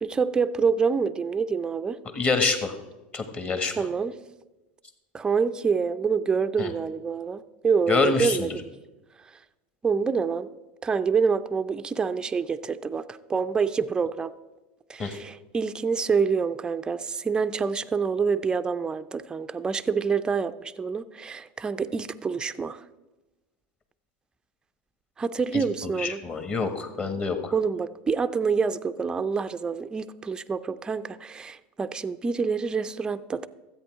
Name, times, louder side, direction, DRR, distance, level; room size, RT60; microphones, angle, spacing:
voice 1, 0.0-2.0 3.7-4.2 5.1-8.7 9.8-10.5 10.8-14.3 14.9-22.8 25.2-26.2 27.5-33.5, right 5 dB, 15° right, 10 dB, 0.4 m, -27 dB
voice 2, 2.1-2.7 3.1-3.7 6.6-6.7 7.9-8.5 15.0-15.1 25.5-27.5, left 4 dB, 25° left, 7 dB, 1.5 m, -26 dB
13.5 x 8.3 x 4.6 m, 1.1 s
supercardioid pair, 125°, 5 cm